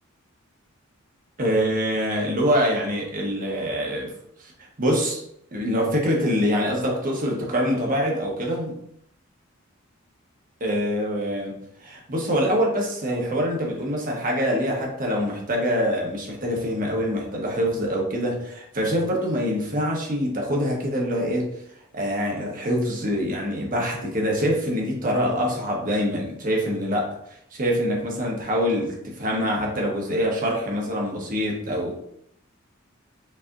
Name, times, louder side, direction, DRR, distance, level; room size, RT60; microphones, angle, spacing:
voice 1, 1.4-4.1 4.4-4.5 4.8-5.2 5.5-8.8 10.6-11.5 11.8-21.5 21.9-27.1 27.5-32.1, equal, 40° right, -1 dB, 1.1 m, -25 dB
5.5 x 3.3 x 2.5 m, 0.72 s
head